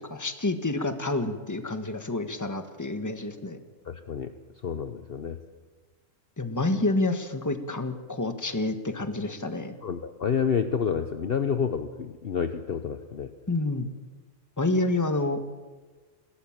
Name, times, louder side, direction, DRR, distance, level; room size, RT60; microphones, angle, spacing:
voice 1, 0.0-3.6 6.4-9.8 13.5-13.9 14.6-15.5, left 2 dB, 15° left, 8 dB, 1.4 m, -28 dB
voice 2, 3.8-4.3 4.6-5.4 9.8-13.3, left 7 dB, 50° left, 8 dB, 1.0 m, -29 dB
22.0 x 18.0 x 7.4 m, 1.4 s
omnidirectional pair, 1.4 m